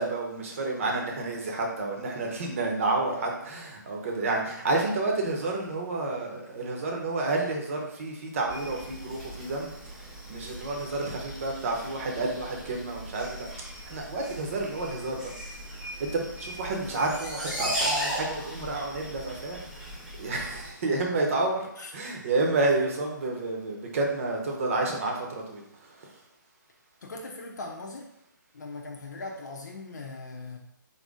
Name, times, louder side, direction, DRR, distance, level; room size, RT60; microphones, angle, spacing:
voice 1, 0.0-13.5 13.8-15.3 16.0-19.9 20.1-21.7 21.9-26.1, right 2 dB, 40° right, 0 dB, 1.0 m, -30 dB
sound 1, 8.5-20.7, equal, 5° right, 0.8 m, -37 dB
voice 2, 27.0-28.1 28.5-30.6, left 3 dB, 60° left, 0 dB, 0.8 m, -39 dB
4.0 x 2.8 x 3.6 m, 0.81 s
figure-of-eight pair, 145°, 11 cm